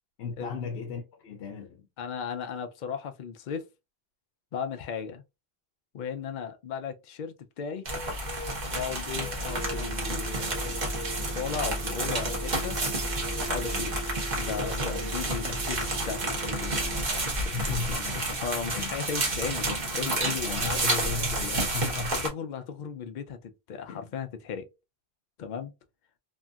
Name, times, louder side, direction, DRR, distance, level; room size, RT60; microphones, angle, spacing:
voice 1, 0.2-1.9 13.7-13.9 15.3-15.6 17.0-18.3 18.7-19.0 20.4-22.1 23.9-24.1, left 5 dB, 80° left, 0.9 m, -36 dB
voice 2, 2.0-3.7 4.5-5.2 5.9-7.9 8.7-12.8 13.5-17.0 17.4-17.5 18.4-21.1 22.0-24.7 25.4-25.7, left 6 dB, 55° left, 0.6 m, -36 dB
sound 1, 7.8-22.3, right 2 dB, 45° right, 1.1 m, -30 dB
sound 2, 9.5-17.0, equal, 25° right, 0.4 m, -36 dB
2.9 x 2.6 x 2.3 m
omnidirectional pair, 1.0 m